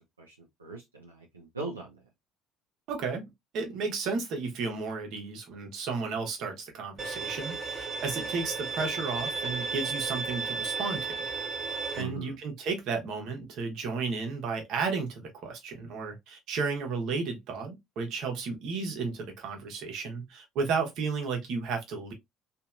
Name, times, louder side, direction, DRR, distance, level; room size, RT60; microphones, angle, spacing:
voice 1, 0.2-2.0 11.9-12.4, right 3 dB, 90° right, 0.6 m, -40 dB
voice 2, 2.9-11.3 12.0-22.1, right 4 dB, 55° right, 1.1 m, -33 dB
Bowed string instrument, 7.0-12.0, right 4 dB, 30° right, 1.5 m, -34 dB
3.1 x 2.6 x 2.4 m
figure-of-eight pair, 60°, 0 cm